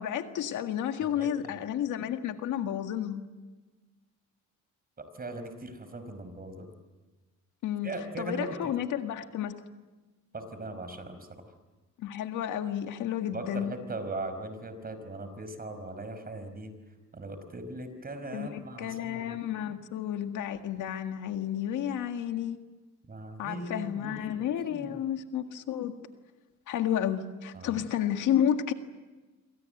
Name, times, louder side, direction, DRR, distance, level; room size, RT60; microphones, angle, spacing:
voice 1, 0.0-3.2 7.6-9.5 12.0-13.8 18.3-22.6 23.4-25.9 26.7-28.7, left 10 dB, 80° left, 7 dB, 1.9 m, -31 dB
voice 2, 1.0-1.6 5.0-6.7 7.8-8.6 10.3-11.2 13.3-16.7 17.1-19.4 23.1-25.0 27.5-27.8, right 2 dB, 30° right, 10 dB, 5.0 m, -39 dB
27.5 x 24.0 x 8.0 m, 1.2 s
cardioid pair, 90°, 30 cm